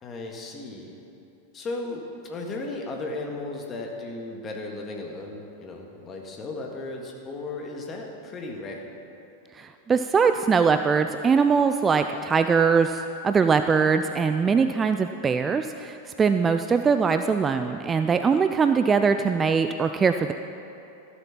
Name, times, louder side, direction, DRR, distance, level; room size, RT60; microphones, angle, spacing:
voice 1, 0.0-1.0 1.5-8.9, left 2 dB, 25° left, 1 dB, 1.8 m, -35 dB
voice 2, 9.5-20.3, right 5 dB, 20° right, 8 dB, 0.3 m, -22 dB
14.0 x 8.0 x 5.8 m, 2.9 s
figure-of-eight pair, 90°, 0 cm